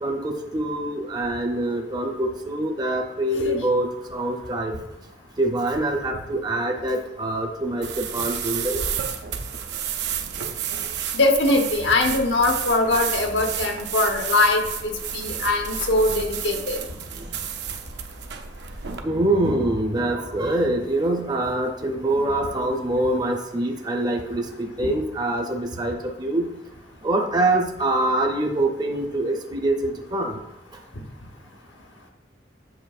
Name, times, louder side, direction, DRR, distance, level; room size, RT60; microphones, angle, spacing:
voice 1, 0.0-4.8 5.4-8.8 16.5-16.6 19.0-26.5 27.0-30.4, right 1 dB, 25° right, 2 dB, 0.6 m, -24 dB
sound 1, 7.8-19.0, right 8 dB, 65° right, 0.5 m, -31 dB
voice 2, 11.1-16.8 24.8-24.9, left 2 dB, 85° left, 4 dB, 0.9 m, -22 dB
7.9 x 5.5 x 2.4 m, 0.93 s
head